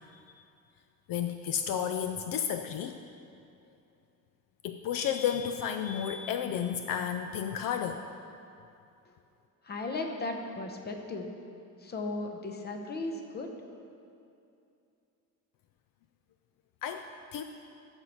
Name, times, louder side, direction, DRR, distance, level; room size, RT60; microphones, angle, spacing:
voice 1, 0.1-0.4 1.1-3.0 4.6-8.0 16.8-17.4, left 8 dB, 65° left, 7 dB, 0.5 m, -32 dB
voice 2, 9.6-11.3 11.8-13.5, left 2 dB, 30° left, 4 dB, 0.8 m, -36 dB
12.5 x 4.6 x 5.5 m, 2.6 s
cardioid pair, 145°, 36 cm